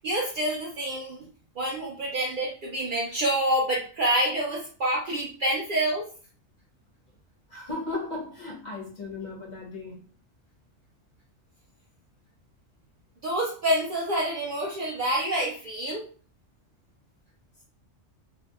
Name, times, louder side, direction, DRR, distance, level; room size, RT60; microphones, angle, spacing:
voice 1, 0.0-1.3 1.6-6.1 13.2-16.0, right 1 dB, 60° right, 0.5 m, -27 dB
voice 2, 7.5-10.1, left 3 dB, 45° left, 0.7 m, -36 dB
2.6 x 2.1 x 2.3 m
omnidirectional pair, 1.3 m